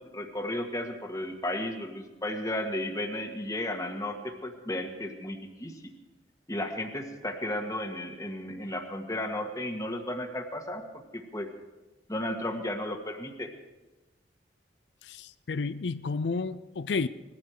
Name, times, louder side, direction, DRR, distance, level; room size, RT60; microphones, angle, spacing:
voice 1, 0.0-5.8 6.5-11.5 12.1-13.5, left 1 dB, 20° left, 1.6 m, -34 dB
voice 2, 15.0-17.1, left 4 dB, 70° left, 0.5 m, -31 dB
20.0 x 15.0 x 4.9 m
head